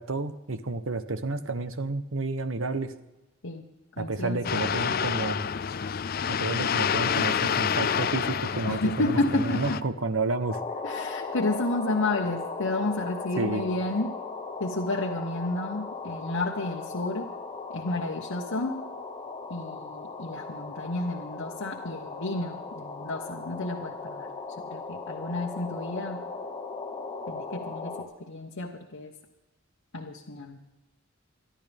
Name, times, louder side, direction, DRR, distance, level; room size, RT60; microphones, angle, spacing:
voice 1, 0.0-2.9 4.0-5.5 6.3-10.6 13.4-13.7, right 3 dB, 75° right, 11 dB, 1.0 m, -30 dB
voice 2, 4.0-4.6 8.7-9.8 10.8-14.1 14.6-17.3 17.7-18.8 19.5-24.3 24.6-26.2 27.3-29.1 29.9-30.6, left 2 dB, 85° left, 0 dB, 1.2 m, -31 dB
sound 1, 4.4-9.8, left 7 dB, 45° left, 0.4 m, -28 dB
sound 2, 10.5-28.0, left 4 dB, 25° left, 1.7 m, -37 dB
25.0 x 11.5 x 3.5 m, 1.0 s
head